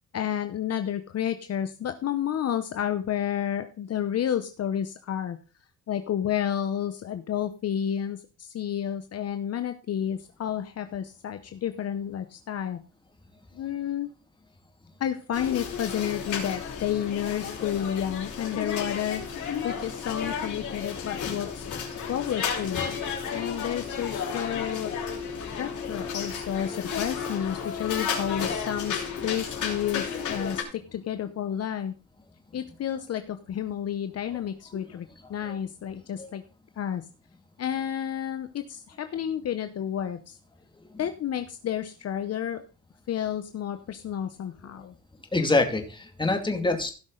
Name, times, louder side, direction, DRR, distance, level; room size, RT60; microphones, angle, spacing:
voice 1, 0.1-5.4 5.9-12.8 13.6-14.1 15.0-19.2 19.6-21.7 22.1-22.8 23.3-24.9 25.6-31.9 32.5-36.4 36.8-37.0 37.6-40.4 41.0-42.6 43.1-44.9, left 10 dB, 55° left, 9 dB, 0.9 m, -31 dB
sound 1, 15.3-30.6, left 6 dB, 75° left, 4.1 m, -33 dB
voice 2, 45.3-46.9, left 2 dB, 15° left, 5 dB, 2.4 m, -25 dB
16.0 x 6.1 x 3.9 m, 0.35 s
cardioid pair, 90°, 30 cm